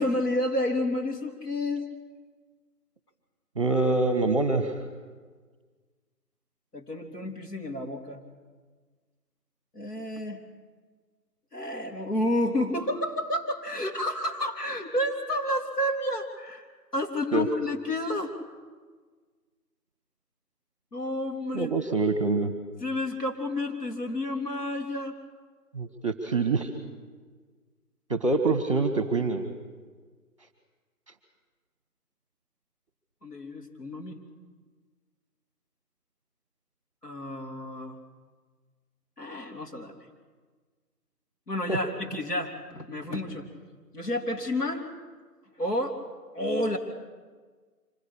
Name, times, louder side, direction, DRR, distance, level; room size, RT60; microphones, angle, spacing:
voice 1, 0.0-1.9 6.7-8.2 9.7-10.4 11.5-16.7 16.9-18.3 20.9-21.7 22.8-25.1 33.2-34.2 37.0-38.0 39.2-40.0 41.5-43.5 43.9-44.9 45.6-46.0 46.3-46.8, left 1 dB, 75° left, 2 dB, 3.7 m, -30 dB
voice 2, 3.6-4.8 17.3-17.5 21.5-22.5 25.7-26.7 28.1-29.5 41.7-41.8, right 3 dB, 20° right, 7 dB, 1.2 m, -25 dB
25.5 x 16.0 x 8.7 m, 1.5 s
figure-of-eight pair, 170°, 48 cm